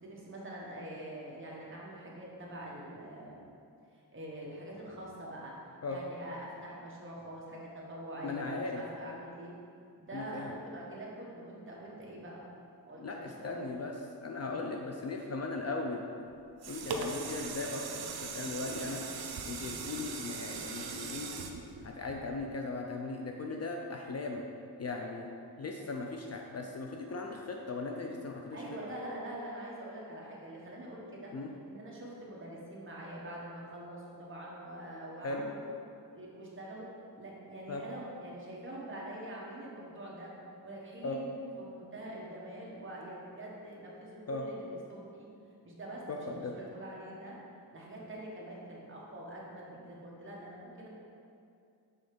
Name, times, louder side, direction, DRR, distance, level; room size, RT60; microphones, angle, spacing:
voice 1, 0.0-3.5 3.9-5.5 5.9-9.5 10.0-12.4 12.8-13.6 14.5-14.7 16.9-17.2 28.5-31.3 31.7-35.6 36.1-36.9 37.2-40.3 40.6-45.3 45.6-47.4 47.7-50.9, right 1 dB, 30° right, -4 dB, 1.2 m, -45 dB
voice 2, 8.2-8.8 10.1-10.6 13.0-13.9 14.2-16.1 16.7-19.0 19.4-21.5 21.8-24.4 24.8-25.3 25.6-28.6 31.3-31.5 35.2-35.5 37.7-37.8 41.0-41.2 44.3-44.4 46.1-46.5, left 3 dB, 40° left, 1 dB, 0.4 m, -38 dB
sound 1, 16.3-22.6 23.1-23.2, right 4 dB, 65° right, 0.6 m, -40 dB
6.3 x 3.9 x 5.1 m, 2.5 s
wide cardioid pair, 150°, 40 cm